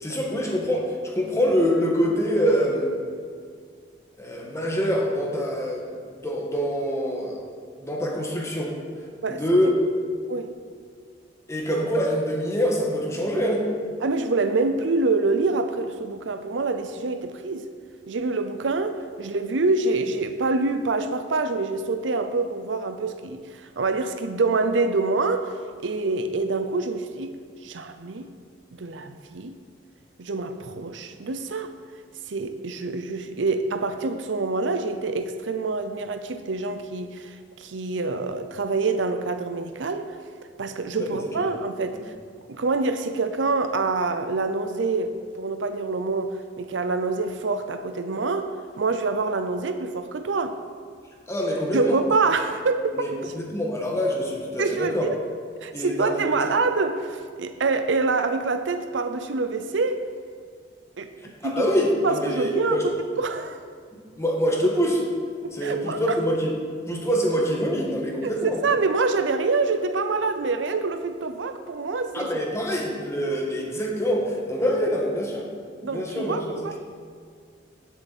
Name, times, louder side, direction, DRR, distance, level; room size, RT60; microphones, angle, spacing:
voice 1, 0.0-2.9 4.2-5.8 6.1-7.4 7.8-8.7 9.3-9.7 11.5-13.6 41.0-41.4 51.3-52.0 52.9-55.1 55.7-56.3 61.2-62.8 63.9-65.0 65.5-66.6 66.8-68.6 72.1-75.4 75.8-76.8, equal, 15° left, -1 dB, 1.6 m, -25 dB
voice 2, 14.0-17.7 18.1-23.4 23.8-25.5 25.8-27.3 27.6-28.3 28.7-29.5 30.2-31.7 32.3-40.1 40.6-42.0 42.5-48.5 48.8-50.6 51.7-53.2 54.6-55.2 55.6-60.1 61.0-61.1 61.4-61.7 62.0-63.6 65.4-66.2 68.2-68.3 68.6-72.3 75.8-76.8, right 3 dB, 75° right, 8 dB, 0.6 m, -26 dB
13.5 x 7.2 x 4.2 m, 2.1 s
head